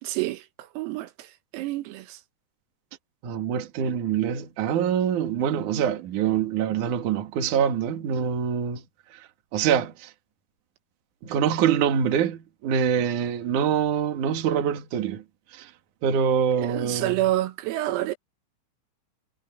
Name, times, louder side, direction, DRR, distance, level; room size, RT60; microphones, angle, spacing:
voice 1, 0.0-2.2 16.6-18.2, right 16 dB, 90° right, 4.1 m, -28 dB
voice 2, 3.2-8.8 9.5-10.1 11.2-15.2 15.5-15.7 16.0-17.1, right 8 dB, 50° right, 2.7 m, -25 dB
omnidirectional pair, 5.9 m